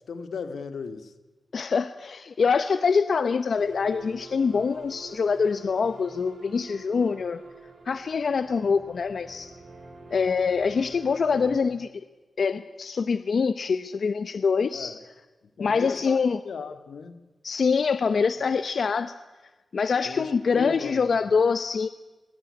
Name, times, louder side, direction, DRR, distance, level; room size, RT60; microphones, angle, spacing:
voice 1, 0.1-1.1 14.7-15.0 15.6-16.2 16.4-17.2 20.0-21.0, left 5 dB, 90° left, 10 dB, 2.1 m, -36 dB
voice 2, 1.5-7.4 7.9-9.5 10.1-11.9 12.4-14.9 15.6-16.4 17.4-19.1 19.7-21.9, left 5 dB, 55° left, 12 dB, 0.8 m, -25 dB
sound 1, 3.5-11.5, right 3 dB, 65° right, 5.5 m, -46 dB
22.0 x 20.5 x 9.8 m, 1.2 s
wide cardioid pair, 170°, 0 cm